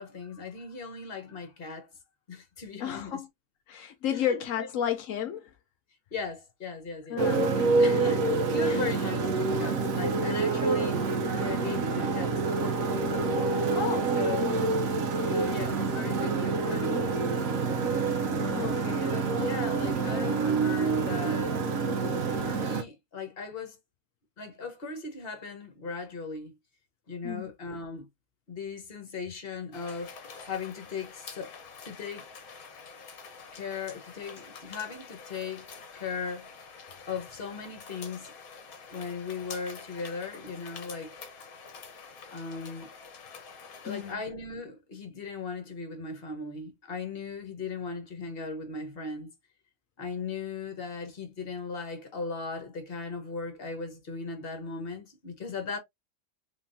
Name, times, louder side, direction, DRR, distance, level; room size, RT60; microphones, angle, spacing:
voice 1, 0.0-1.9 2.3-3.2 4.1-4.7 6.1-7.2 7.8-11.0 11.3-12.6 13.4-13.8 14.1-14.9 15.3-17.2 18.2-21.6 22.3-23.8 24.4-26.5 27.1-28.1 28.5-31.5 31.8-32.3 33.5-35.7 35.9-36.5 37.1-38.3 38.9-41.1 42.3-42.9 43.8-49.3 50.0-55.8, left 4 dB, 35° left, 1.2 m, -38 dB
voice 2, 2.8-3.3 3.7-5.5 7.1-8.0 8.6-8.8 13.7-14.1 18.5-19.3 27.2-27.5 43.9-44.2, left 9 dB, 75° left, 0.7 m, -33 dB
Motorcycle, 7.2-22.8, right 4 dB, 60° right, 1.0 m, -27 dB
sound 1, 29.7-44.1, left 5 dB, 55° left, 1.3 m, -47 dB
3.8 x 3.6 x 2.7 m
omnidirectional pair, 2.0 m